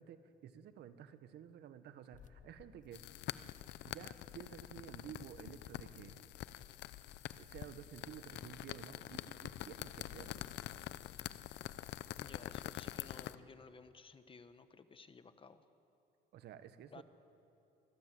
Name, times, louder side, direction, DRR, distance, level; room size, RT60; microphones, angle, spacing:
voice 1, 0.0-3.0 3.8-6.2 7.4-10.4 16.3-17.0, right 9 dB, 70° right, 11 dB, 1.4 m, -52 dB
sound 1, 2.1-7.0, left 8 dB, 45° left, 0.8 m, -65 dB
sound 2, 2.9-13.3, left 14 dB, 75° left, 0.7 m, -46 dB
voice 2, 12.2-15.6 16.9-17.0, left 5 dB, 30° left, 11 dB, 1.2 m, -56 dB
26.5 x 20.0 x 7.8 m, 2.9 s
cardioid pair, 110°, 18 cm